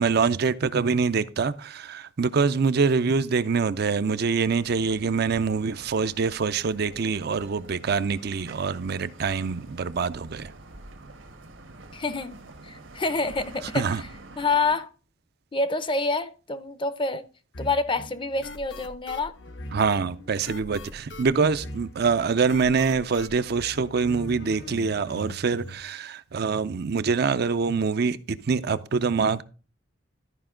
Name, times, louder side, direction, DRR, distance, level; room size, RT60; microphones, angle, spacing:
voice 1, 0.0-10.5 13.7-14.0 19.7-29.4, right 5 dB, 55° right, 0.5 m, -25 dB
sound 1, 4.4-14.8, right 2 dB, 80° right, 1.4 m, -47 dB
voice 2, 11.9-12.4 12.6-14.1 14.4-14.9 15.5-17.2 17.6-19.3, left 3 dB, 25° left, 0.6 m, -27 dB
sound 2, 17.5-25.8, left 1 dB, 65° left, 1.0 m, -41 dB
13.0 x 5.1 x 3.7 m
head